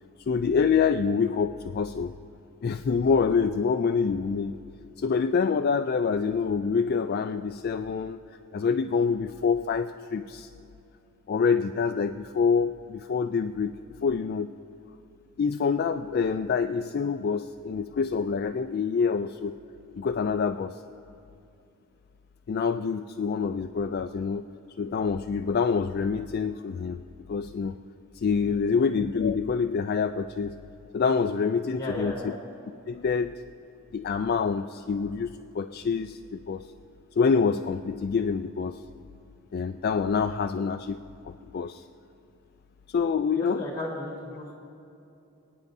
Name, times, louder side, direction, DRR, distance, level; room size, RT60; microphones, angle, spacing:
voice 1, 0.3-2.1 2.6-4.6 5.0-8.2 8.5-10.5 11.3-14.5 15.4-19.6 20.0-20.8 22.5-24.5 24.8-27.7 28.1-30.6 30.9-32.3 32.9-33.4 33.9-35.3 35.5-36.6 37.2-38.8 39.5-41.8 42.9-43.6, left 5 dB, 45° left, 7 dB, 0.3 m, -26 dB
voice 2, 28.4-28.8 31.8-32.3 43.4-44.5, left 1 dB, 15° left, -3 dB, 3.4 m, -36 dB
28.0 x 9.4 x 2.6 m, 2.8 s
head